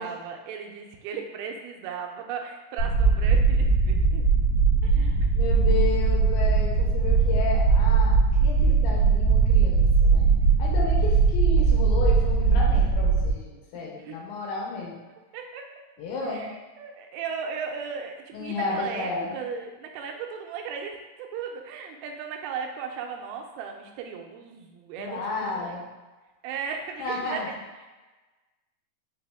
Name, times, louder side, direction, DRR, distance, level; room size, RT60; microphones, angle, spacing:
voice 1, 0.0-4.2 4.8-5.3 13.7-14.2 15.3-15.7 16.2-25.8 26.4-27.6 27.8-27.9, right 6 dB, 90° right, 3 dB, 2.4 m, -36 dB
sound 1, 2.8-13.3, right 4 dB, 75° right, 2.0 m, -20 dB
voice 2, 4.9-10.3 10.6-15.0 16.0-16.5 18.3-19.3 25.0-25.9 27.0-27.5, left 4 dB, 85° left, -2 dB, 2.4 m, -32 dB
5.6 x 2.1 x 3.3 m, 1.2 s
omnidirectional pair, 4.3 m